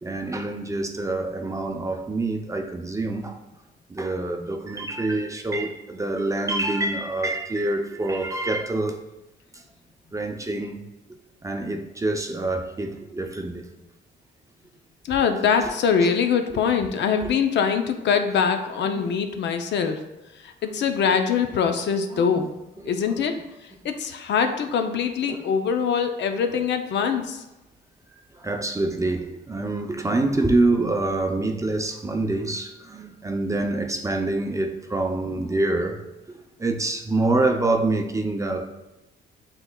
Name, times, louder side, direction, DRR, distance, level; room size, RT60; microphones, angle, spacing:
voice 1, 0.0-3.4 3.9-9.0 10.1-10.8 11.4-13.7 16.0-16.1 17.2-17.3 18.9-19.0 22.1-22.3 22.8-23.2 25.3-25.4 28.3-36.0 36.6-38.7, right 2 dB, 15° right, 4 dB, 0.5 m, -26 dB
voice 2, 15.0-20.0 20.4-22.5 22.8-23.3 23.6-27.4, left 6 dB, 65° left, 7 dB, 0.5 m, -23 dB
7.7 x 3.0 x 2.3 m, 0.99 s
cardioid pair, 90°, 20 cm